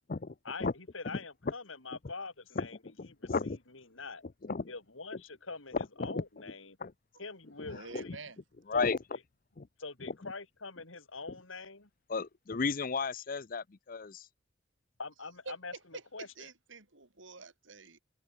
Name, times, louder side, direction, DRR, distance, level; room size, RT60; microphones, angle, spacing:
voice 1, 0.5-2.8 3.2-4.2 4.7-6.8 7.2-7.8 8.0-8.2 8.7-8.9 9.8-11.9 15.0-15.7 16.1-16.5, left 3 dB, 90° left, 3.8 m, -44 dB
voice 2, 2.6-3.6 4.4-4.7 5.1-5.2 5.7-6.2 6.8-6.9 7.6-8.2 8.7-9.0 9.6-9.7 10.1-10.3 12.1-14.3, left 4 dB, 45° left, 0.6 m, -34 dB
voice 3, 7.7-8.4 15.5-18.0, right 4 dB, 75° right, 3.1 m, -48 dB
head